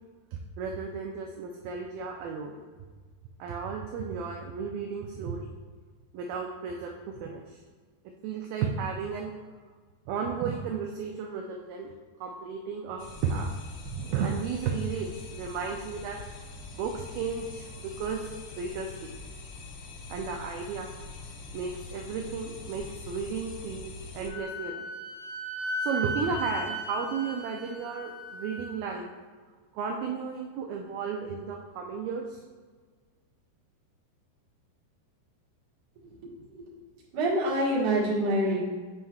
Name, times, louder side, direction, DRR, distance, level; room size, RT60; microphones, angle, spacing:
voice 1, 0.3-2.6 3.4-5.5 6.1-7.6 8.1-9.3 10.1-11.9 12.2-13.5 13.8-16.2 16.7-19.1 20.1-20.9 21.5-24.9 25.8-29.1 29.7-32.4, right 5 dB, 85° right, 1 dB, 2.1 m, -34 dB
sound 1, 13.0-24.3, left 3 dB, 80° left, 3.2 m, -44 dB
Wind instrument woodwind instrument, 24.3-28.7, equal, 55° left, 2.7 m, -36 dB
voice 2, 36.2-36.6 37.1-38.6, right 1 dB, 50° right, -6 dB, 1.7 m, -26 dB
9.1 x 5.4 x 2.4 m, 1.5 s
omnidirectional pair, 4.7 m